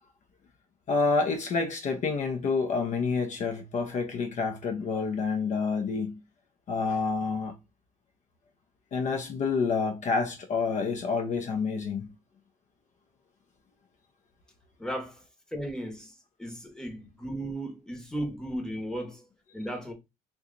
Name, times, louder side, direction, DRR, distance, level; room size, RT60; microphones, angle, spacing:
voice 1, 0.9-6.2 6.7-7.6 8.9-12.1, left 4 dB, 45° left, 0.5 m, -28 dB
voice 2, 14.8-15.2 15.5-19.3 19.5-19.9, right 1 dB, 5° left, 0.9 m, -35 dB
2.8 x 2.2 x 3.6 m
cardioid pair, 110°, 17 cm